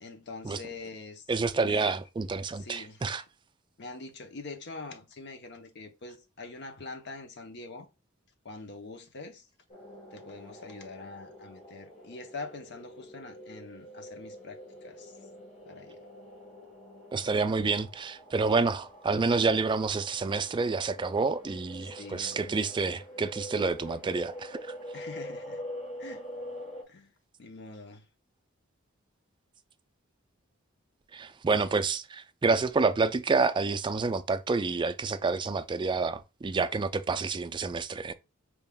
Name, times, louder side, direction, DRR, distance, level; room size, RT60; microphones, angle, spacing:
voice 1, 0.0-1.2 1.6-2.0 2.5-3.0 3.8-7.9 8.4-9.5 10.1-15.1 15.7-16.0 21.8-22.7 24.9-25.6 26.0-26.3 26.9-27.1 27.4-28.1, left 3 dB, 55° left, 0.8 m, -44 dB
voice 2, 1.3-3.2 17.1-24.7 31.1-38.1, right 4 dB, 20° right, 0.3 m, -28 dB
sound 1, 9.7-26.8, equal, 35° left, 1.3 m, -45 dB
4.6 x 3.5 x 2.3 m
head